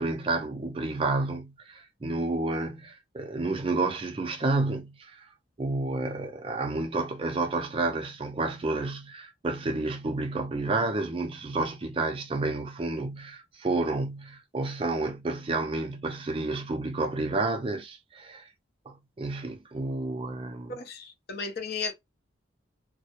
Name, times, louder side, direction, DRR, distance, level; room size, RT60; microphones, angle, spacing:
voice 1, 0.0-5.3 5.6-18.5 18.9-20.8, right 2 dB, 30° right, 0.4 m, -30 dB
voice 2, 20.7-21.9, left 4 dB, 55° left, 0.6 m, -34 dB
2.2 x 2.0 x 2.7 m
head